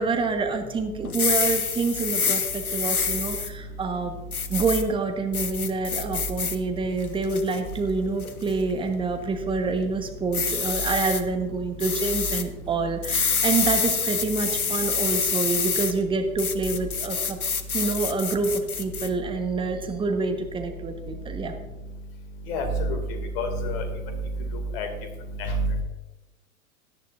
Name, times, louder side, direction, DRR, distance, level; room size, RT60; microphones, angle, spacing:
voice 1, 0.0-4.1 4.5-17.4 17.7-21.5, right 4 dB, 10° right, 6 dB, 1.2 m, -27 dB
sound 1, 1.0-3.5 4.3-4.8 5.3-6.6 7.0-7.6 8.2-8.5 10.3-11.2 11.8-12.4 13.0-15.9 16.4-19.1, left 6 dB, 85° left, 0.9 m, -27 dB
voice 2, 22.5-23.0 23.4-23.8 24.7-24.9 25.4-25.5, left 1 dB, 45° left, 6 dB, 2.4 m, -27 dB
17.0 x 11.5 x 2.5 m, 1.1 s
figure-of-eight pair, 100°, 42 cm